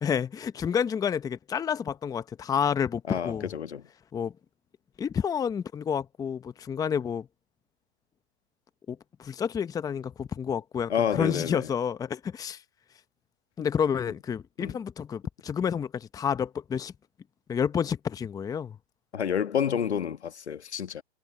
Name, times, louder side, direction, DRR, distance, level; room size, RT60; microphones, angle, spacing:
voice 1, 0.0-3.5 4.1-4.3 5.0-7.3 8.9-12.6 13.6-16.9 17.5-18.8, left 7 dB, 10° left, 0.9 m, -29 dB
voice 2, 3.1-3.8 10.9-11.7 14.6-14.7 19.1-21.0, left 8 dB, 85° left, 1.5 m, -29 dB
hypercardioid pair, 130°, 33 cm